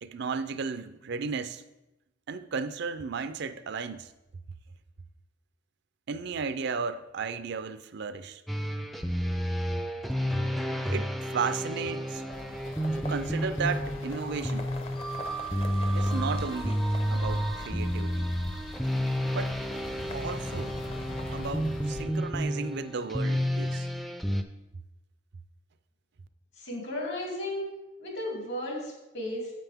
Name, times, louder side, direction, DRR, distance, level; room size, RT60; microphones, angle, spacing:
voice 1, 0.0-1.6 2.3-4.1 6.1-8.4 10.9-12.2 13.0-14.7 15.9-18.3 19.3-19.6 20.1-20.8 21.3-23.9, right 5 dB, 60° right, 12 dB, 0.5 m, -34 dB
sound 1, 8.5-24.4, equal, ahead, 0.4 m, -31 dB
sound 2, 11.5-22.4, left 1 dB, 30° left, 0.7 m, -44 dB
sound 3, 12.3-22.0, left 2 dB, 80° left, 0.7 m, -46 dB
voice 2, 26.6-27.7 28.0-29.5, left 1 dB, 65° left, -1 dB, 2.9 m, -34 dB
9.1 x 7.8 x 3.5 m, 0.94 s
head